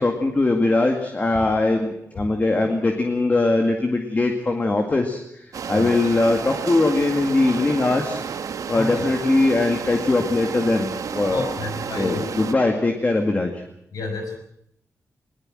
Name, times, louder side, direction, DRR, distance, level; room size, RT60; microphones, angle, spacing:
voice 1, 0.0-8.2 8.7-11.6 12.0-13.6, left 2 dB, 25° left, 4 dB, 2.1 m, -21 dB
sound 1, 5.5-12.5, right 6 dB, 80° right, 1.3 m, -31 dB
voice 2, 8.7-9.0 11.3-12.2 13.9-14.4, left 3 dB, 90° left, 5 dB, 6.3 m, -30 dB
20.5 x 20.0 x 7.8 m, 0.76 s
wide cardioid pair, 150°, 6 cm